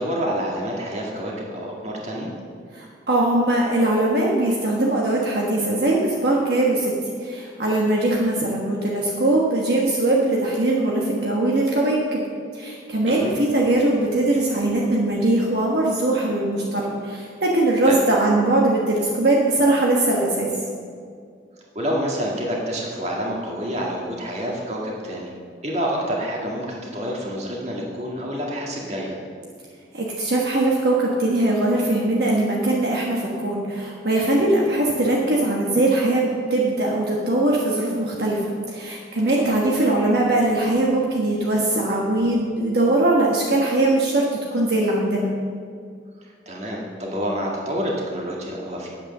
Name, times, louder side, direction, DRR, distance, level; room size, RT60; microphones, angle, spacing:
voice 1, 0.0-2.3 13.1-13.3 17.8-18.0 21.8-25.3 25.6-29.2 39.4-39.5 46.2-48.9, equal, 35° right, -2 dB, 1.9 m, -28 dB
voice 2, 2.7-6.9 7.2-12.2 12.5-20.5 29.9-45.3, right 2 dB, 60° right, -3 dB, 1.3 m, -21 dB
9.1 x 8.3 x 6.6 m, 2.2 s
head